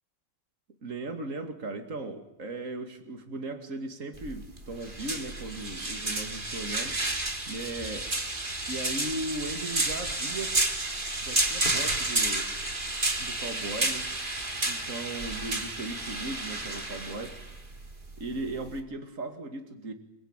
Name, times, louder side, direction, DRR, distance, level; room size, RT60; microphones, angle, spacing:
voice 1, 0.8-7.0 7.5-8.1 8.7-10.6 11.2-12.5 13.2-14.1 14.6-17.4 18.2-19.9, right 2 dB, 70° right, 6 dB, 2.7 m, -37 dB
sound 1, 4.1-18.8, right 2 dB, 35° right, 2.9 m, -31 dB
29.0 x 21.5 x 9.0 m, 0.82 s
omnidirectional pair, 1.4 m